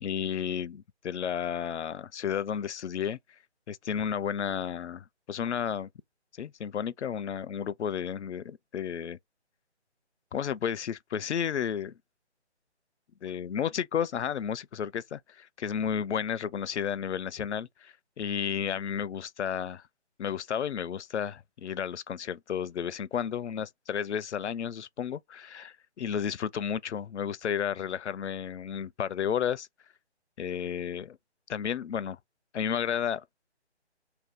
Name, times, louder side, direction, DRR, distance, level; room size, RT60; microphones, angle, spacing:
voice 1, 0.0-3.2 3.7-5.9 6.3-9.2 10.3-11.9 13.2-19.8 20.2-29.7 30.4-31.2 31.5-32.2 32.5-33.2, left 8 dB, 75° left, 0.5 m, -32 dB
2.7 x 2.3 x 3.5 m
figure-of-eight pair, 155°, 35 cm